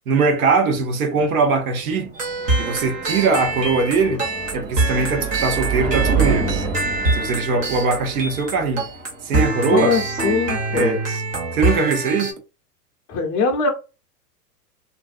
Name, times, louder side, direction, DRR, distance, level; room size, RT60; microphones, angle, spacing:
voice 1, 0.1-2.1 2.6-4.2 4.5-6.5 7.1-8.9 9.2-9.9 10.7-11.0 11.5-12.3, right 4 dB, 60° right, 0.9 m, -21 dB
sound 1, 1.8-10.6, right 5 dB, 35° right, 1.0 m, -28 dB
sound 2, 2.1-12.3, right 2 dB, 15° right, 0.4 m, -25 dB
voice 2, 9.7-11.0 13.1-13.7, left 4 dB, 30° left, 0.7 m, -21 dB
2.6 x 2.0 x 2.4 m
figure-of-eight pair, 95°, 49 cm